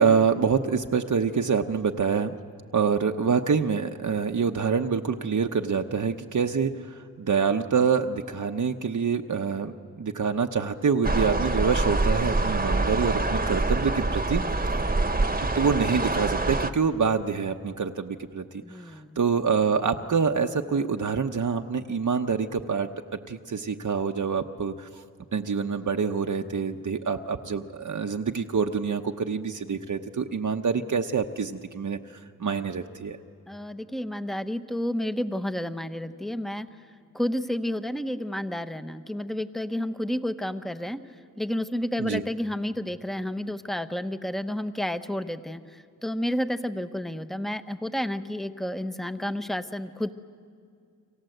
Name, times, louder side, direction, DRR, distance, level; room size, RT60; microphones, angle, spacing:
voice 1, 0.0-2.4 2.7-14.7 15.5-18.4 18.7-22.9 23.3-25.0 25.3-33.2 42.0-42.2, right 5 dB, 65° right, 4 dB, 1.0 m, -26 dB
sound 1, 11.0-16.7, right 2 dB, 25° right, 1.3 m, -25 dB
voice 2, 18.6-19.2 33.5-36.7 37.1-41.0 41.4-50.1, left 1 dB, ahead, 10 dB, 1.1 m, -31 dB
29.5 x 25.5 x 7.9 m, 2.3 s
wide cardioid pair, 70°, 33 cm